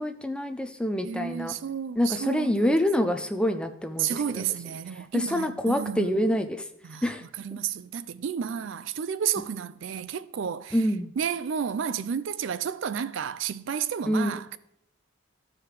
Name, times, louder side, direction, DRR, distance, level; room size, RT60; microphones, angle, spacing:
voice 1, 0.0-1.5 2.0-4.4 5.1-6.7 7.0-7.2 10.7-11.1 14.1-14.4, equal, 5° left, 0.4 m, -26 dB
voice 2, 1.0-2.7 4.0-6.1 6.8-7.0 7.4-10.8 11.2-14.6, right 8 dB, 65° right, 0.4 m, -31 dB
14.0 x 4.8 x 3.3 m
head